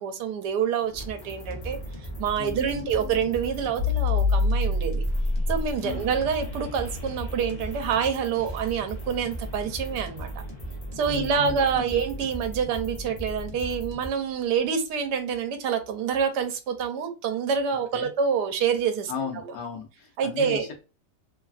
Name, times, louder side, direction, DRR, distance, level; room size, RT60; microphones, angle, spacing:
voice 1, 0.0-1.8 2.2-5.0 5.5-10.4 10.9-19.5 20.2-20.7, right 7 dB, 85° right, 1.2 m, -27 dB
sound 1, 0.8-13.5, left 3 dB, 40° right, 1.1 m, -31 dB
sound 2, 0.9-14.1, right 1 dB, 50° left, 0.5 m, -37 dB
voice 2, 2.4-3.2 5.8-6.1 11.1-11.9 17.9-18.1 19.1-20.7, left 7 dB, 70° left, 1.0 m, -36 dB
3.1 x 2.3 x 2.3 m
omnidirectional pair, 1.8 m